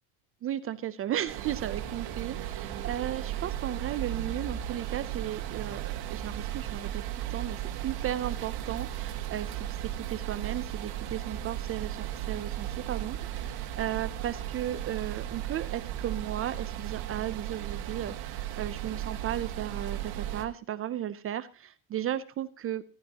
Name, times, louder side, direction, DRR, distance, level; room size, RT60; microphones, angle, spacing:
voice 1, 0.4-9.6 10.0-22.8, right 11 dB, 30° right, 14 dB, 0.5 m, -35 dB
sound 1, 1.3-20.4, right 12 dB, 55° right, 1.9 m, -36 dB
14.5 x 14.0 x 2.9 m, 0.35 s
cardioid pair, 150°, 45 cm